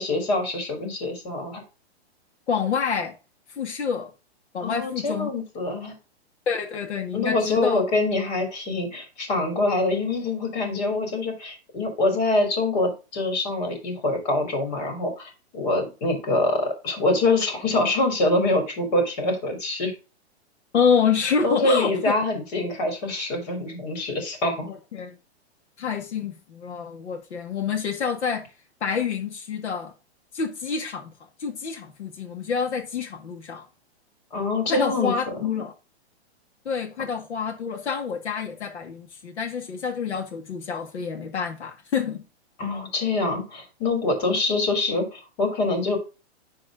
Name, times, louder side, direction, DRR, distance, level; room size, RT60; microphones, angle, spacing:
voice 1, 0.0-1.6 4.6-5.9 7.1-19.9 21.4-24.7 34.3-35.1 35.4-35.5 42.6-46.0, left 2 dB, 40° left, 3.5 m, -25 dB
voice 2, 2.5-3.1 3.6-4.1 4.5-5.3 6.5-7.8 20.7-21.9 24.6-25.2 25.8-28.4 28.8-29.9 30.3-31.1 31.4-33.6 34.6-35.7 36.7-42.2, left 6 dB, 85° left, 2.1 m, -27 dB
10.5 x 4.1 x 3.7 m
hypercardioid pair, 170°, 33 cm